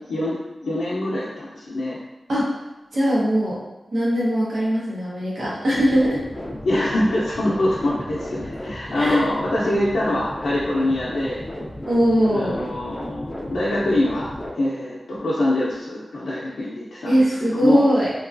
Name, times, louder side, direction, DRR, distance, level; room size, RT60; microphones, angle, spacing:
voice 1, 0.6-2.0 6.6-11.4 12.3-17.8, left 1 dB, 80° left, -7 dB, 0.5 m, -24 dB
voice 2, 2.9-3.6 3.9-6.2 8.9-9.2 11.9-12.6 17.0-18.1, equal, 80° right, -8 dB, 1.0 m, -20 dB
sound 1, 5.7-14.5, left 1 dB, 20° left, 0.4 m, -34 dB
2.9 x 2.3 x 2.5 m, 1.0 s
wide cardioid pair, 110°, 0 cm